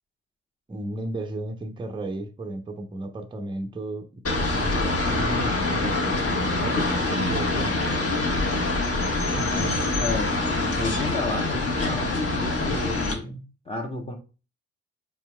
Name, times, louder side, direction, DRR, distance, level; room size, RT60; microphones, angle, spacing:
voice 1, 0.7-4.1 4.5-7.8, right 1 dB, 15° right, 6 dB, 0.6 m, -34 dB
sound 1, 4.2-13.1, left 2 dB, 40° left, 1.4 m, -25 dB
voice 2, 9.3-14.2, left 3 dB, 15° left, 1 dB, 1.0 m, -32 dB
4.5 x 3.3 x 2.2 m, 0.34 s
hypercardioid pair, 40°, 34 cm